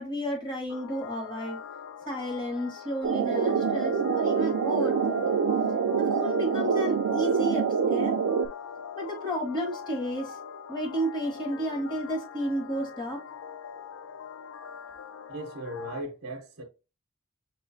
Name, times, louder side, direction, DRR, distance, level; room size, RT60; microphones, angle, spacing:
voice 1, 0.0-1.6 2.0-5.4 6.0-8.1 9.0-10.4 10.7-13.2, equal, 20° left, 1.6 m, -32 dB
sound 1, 0.7-16.0, left 7 dB, 70° left, 0.3 m, -42 dB
sound 2, 3.0-8.5, right 6 dB, 90° right, 0.4 m, -26 dB
voice 2, 15.3-16.6, right 1 dB, 65° right, 0.8 m, -37 dB
5.9 x 3.0 x 2.6 m
head